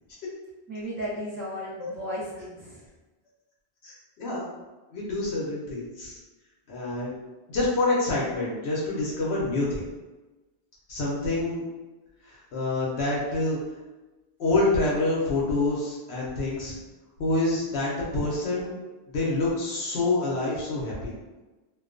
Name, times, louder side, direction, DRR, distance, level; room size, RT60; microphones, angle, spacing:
voice 1, 0.7-2.8, equal, 15° right, -14 dB, 0.4 m, -35 dB
voice 2, 3.8-4.5 4.9-6.2 6.7-7.1 7.5-9.8 10.9-11.6 12.2-13.6 14.4-16.8 17.2-18.7 19.1-21.1, left 2 dB, 75° left, -5 dB, 0.8 m, -27 dB
2.3 x 2.2 x 2.4 m, 1.2 s
omnidirectional pair, 1.1 m